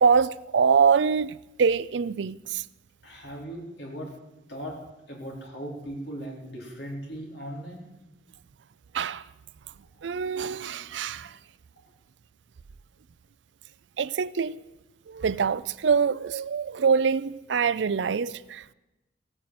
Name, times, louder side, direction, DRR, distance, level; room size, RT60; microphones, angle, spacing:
voice 1, 0.0-2.6 8.9-9.3 10.0-11.4 14.0-14.6 15.1-18.7, right 6 dB, 80° right, 0.4 m, -24 dB
voice 2, 3.0-4.1 4.5-4.8 5.1-7.8 9.9-10.0, equal, 65° left, 4.1 m, -38 dB
16.5 x 8.9 x 7.8 m
head